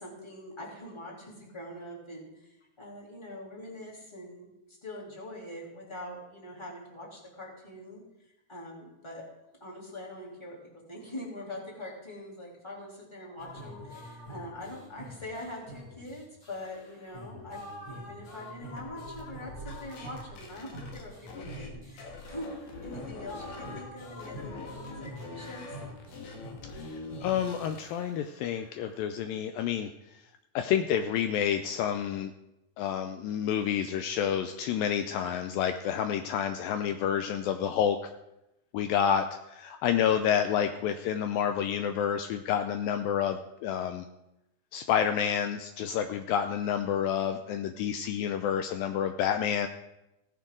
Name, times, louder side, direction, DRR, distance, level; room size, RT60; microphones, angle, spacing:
voice 1, 0.0-8.0 8.5-9.3 9.6-25.8, left 1 dB, 10° left, -4 dB, 2.2 m, -43 dB
sound 1, 13.4-29.1, equal, 40° left, 4.8 m, -46 dB
sound 2, 18.8-21.7 22.0-23.8 24.2-27.9, left 3 dB, 75° left, 3.7 m, -44 dB
voice 2, 26.7-29.9 30.6-32.3 32.8-38.1 38.7-44.1 44.7-49.7, left 9 dB, 90° left, 8 dB, 2.0 m, -29 dB
16.5 x 10.0 x 3.7 m, 0.92 s
omnidirectional pair, 4.7 m